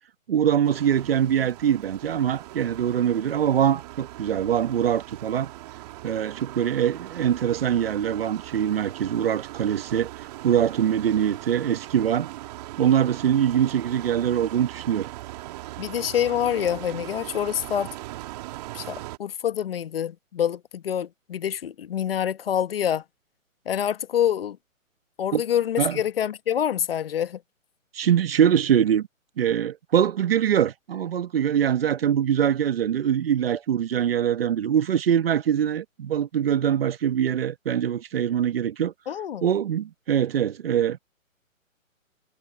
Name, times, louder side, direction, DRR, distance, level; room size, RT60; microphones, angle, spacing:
voice 1, 0.3-5.5 6.0-12.3 12.8-15.1 25.3-25.4 25.8-26.0 27.9-29.1 29.4-38.9 39.4-41.0, right 9 dB, 45° right, 1.3 m, -23 dB
sound 1, 0.6-19.2, right 17 dB, 30° right, 2.4 m, -40 dB
voice 2, 15.8-17.9 18.7-23.0 23.6-24.6 25.2-27.4 39.1-39.5, left 9 dB, 45° left, 1.2 m, -26 dB
figure-of-eight pair, 145°, 41 cm